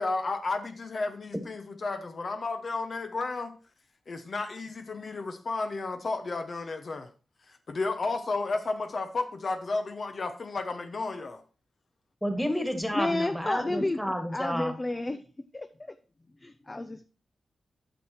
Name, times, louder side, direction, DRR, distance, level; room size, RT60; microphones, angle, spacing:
voice 1, 0.0-3.5 4.1-7.1 7.5-11.4, left 3 dB, 55° left, 1.0 m, -32 dB
voice 2, 12.2-14.7, equal, ahead, 1.9 m, -30 dB
voice 3, 12.9-15.2 15.5-15.9 16.4-17.1, left 2 dB, 25° left, 0.6 m, -31 dB
9.2 x 6.5 x 4.4 m
cardioid pair, 85°, 0 cm